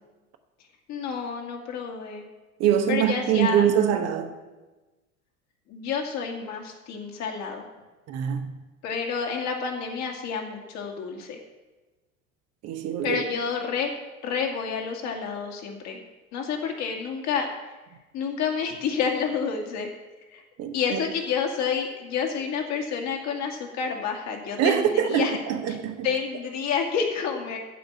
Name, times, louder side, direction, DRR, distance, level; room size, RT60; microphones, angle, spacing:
voice 1, 0.9-2.2 2.9-3.6 5.7-7.6 8.8-11.4 13.0-13.9 14.2-16.0 16.3-17.5 18.1-19.9 20.3-20.4 20.7-25.4 25.7-25.8 26.0-27.6, left 6 dB, 40° left, 2.2 m, -29 dB
voice 2, 2.6-4.3 8.1-8.6 12.6-13.2 20.6-21.0 24.6-26.1, right 9 dB, 35° right, 1.1 m, -24 dB
14.5 x 5.3 x 8.5 m
figure-of-eight pair, 75°, 42 cm